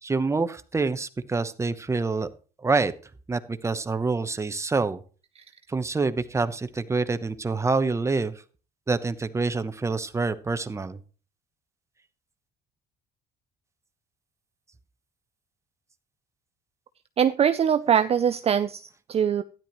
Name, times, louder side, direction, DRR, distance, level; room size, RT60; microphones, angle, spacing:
voice 1, 0.0-2.3 2.6-2.9 3.3-5.0 5.7-8.3 8.9-11.0, right 3 dB, 15° right, 11 dB, 0.9 m, -26 dB
voice 2, 17.2-19.4, right 8 dB, 35° right, 11 dB, 0.5 m, -22 dB
12.5 x 10.5 x 3.1 m, 0.37 s
cardioid pair, 110°, 17 cm